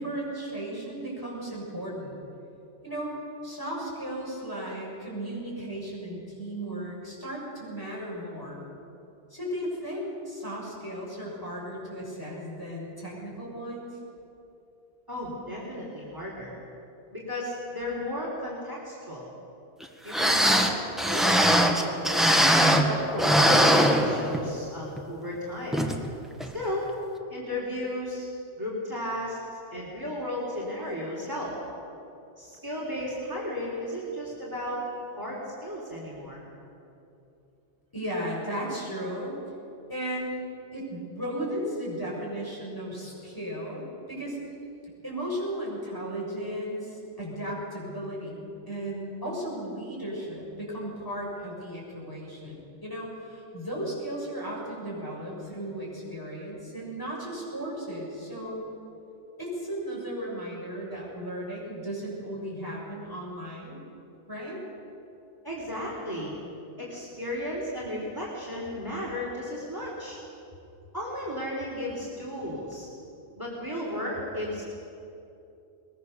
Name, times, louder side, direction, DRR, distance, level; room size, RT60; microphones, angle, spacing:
voice 1, 0.0-2.2 2.8-3.1 3.4-8.7 9.3-14.0 37.9-39.3 39.9-40.4 40.7-43.8 44.1-44.4 45.0-58.6 59.4-63.8 64.3-64.6, right 1 dB, 15° left, -5 dB, 7.1 m, -35 dB
voice 2, 15.1-16.5 17.1-19.3 20.0-20.7 21.0-22.3 22.8-25.8 26.5-26.9 27.3-28.3 28.6-29.4 29.7-31.5 32.4-34.8 35.2-36.4 65.4-66.3 66.8-70.2 70.9-72.9 73.4-74.7, left 1 dB, 20° right, -5 dB, 3.8 m, -34 dB
sound 1, 19.8-19.9 20.1-22.9 23.2-24.6 25.0-25.1 25.7-26.0 26.4-26.5, equal, ahead, 1.6 m, -21 dB
22.0 x 21.0 x 6.9 m, 2.8 s
omnidirectional pair, 1.2 m